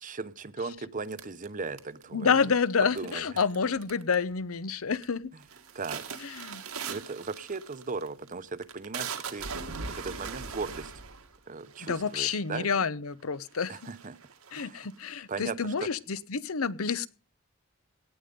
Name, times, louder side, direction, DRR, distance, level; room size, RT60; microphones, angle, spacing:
voice 1, 0.0-2.4 2.9-3.4 5.7-6.0 6.5-9.6 9.8-10.9 11.5-12.7 13.7-14.2 14.5-14.9 15.3-15.9, right 4 dB, 40° right, 15 dB, 0.8 m, -37 dB
sound 1, 1.1-2.2 3.0-3.6 3.8-4.3 4.7-5.1 5.4-12.5 13.1-13.2 13.5-15.1, right 5 dB, 90° right, 2.0 m, -40 dB
voice 2, 2.1-5.3 6.2-6.6 11.8-13.9 14.5-17.1, left 5 dB, 75° left, 17 dB, 0.8 m, -29 dB
17.5 x 9.3 x 5.3 m, 0.35 s
head